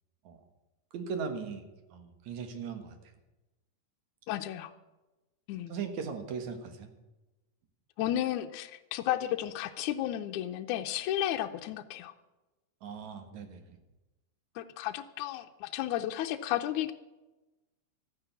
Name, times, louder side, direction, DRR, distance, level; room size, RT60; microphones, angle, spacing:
voice 1, 0.9-3.0 5.7-6.9 12.8-13.8, right 5 dB, 70° right, 7 dB, 2.8 m, -38 dB
voice 2, 4.3-4.7 5.5-5.7 8.0-12.1 14.6-16.9, left 12 dB, 80° left, 6 dB, 2.0 m, -33 dB
14.0 x 9.8 x 8.2 m, 1.1 s
omnidirectional pair, 3.5 m